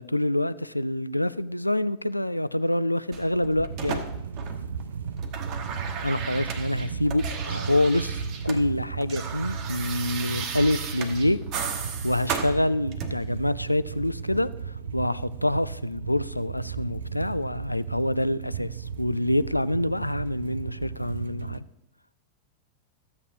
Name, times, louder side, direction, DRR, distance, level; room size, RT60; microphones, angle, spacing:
voice 1, 0.0-4.1 6.0-11.4 11.7-21.6, left 1 dB, 85° left, 17 dB, 0.3 m, -26 dB
sound 1, 3.1-4.8 5.1-8.6 8.9-13.3 14.3-14.5, right 6 dB, 40° right, 1.1 m, -35 dB
sound 2, 3.7-21.6, right 6 dB, 65° right, 0.4 m, -35 dB
14.0 x 8.2 x 2.8 m, 0.85 s
figure-of-eight pair, 90°, 0 cm